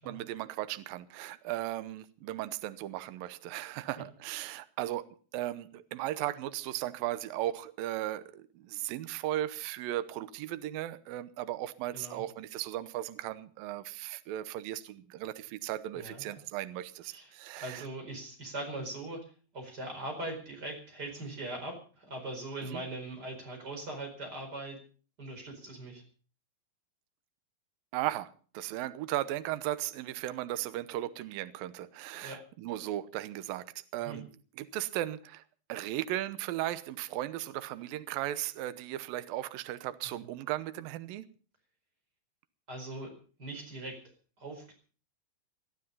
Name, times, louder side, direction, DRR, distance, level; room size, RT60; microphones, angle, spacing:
voice 1, 0.1-17.9 22.6-22.8 27.9-33.7 33.9-34.3 34.6-35.4 35.7-41.3, right 14 dB, 75° right, 2.4 m, -36 dB
voice 2, 15.9-16.3 17.1-17.3 17.6-19.2 19.5-24.8 25.2-26.0 32.2-32.4 34.0-34.2 40.0-40.2 42.7-43.1 43.4-44.0 44.4-44.7, right 2 dB, 25° right, 5.0 m, -40 dB
20.0 x 12.0 x 5.5 m
omnidirectional pair, 4.7 m